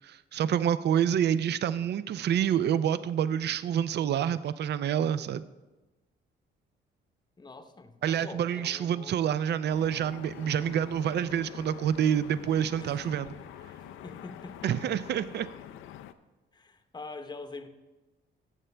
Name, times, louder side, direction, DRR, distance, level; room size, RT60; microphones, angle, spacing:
voice 1, 0.0-5.5 8.0-13.3 14.6-15.5, right 9 dB, 60° right, 15 dB, 0.5 m, -27 dB
voice 2, 7.4-9.2 12.7-13.0 14.0-14.7 16.5-17.7, left 3 dB, 20° left, 8 dB, 0.8 m, -44 dB
sound 1, 9.7-16.1, left 10 dB, 85° left, 0.5 m, -46 dB
14.0 x 7.7 x 3.3 m, 1.1 s
cardioid pair, 90°, 20 cm